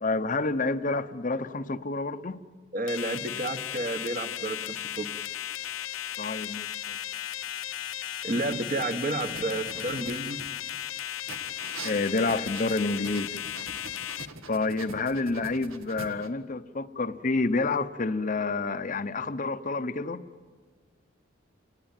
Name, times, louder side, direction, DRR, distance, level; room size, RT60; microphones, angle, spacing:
voice 1, 0.0-2.4 6.2-7.0 11.8-13.4 14.5-20.2, left 3 dB, 40° left, 0.8 m, -29 dB
voice 2, 2.7-5.1 8.2-10.4, right 2 dB, 40° right, 1.4 m, -31 dB
sound 1, 2.9-14.3, left 12 dB, 80° left, 0.7 m, -36 dB
sound 2, 9.2-10.8 11.3-16.3, right 3 dB, 85° right, 1.8 m, -44 dB
28.0 x 19.5 x 9.0 m
head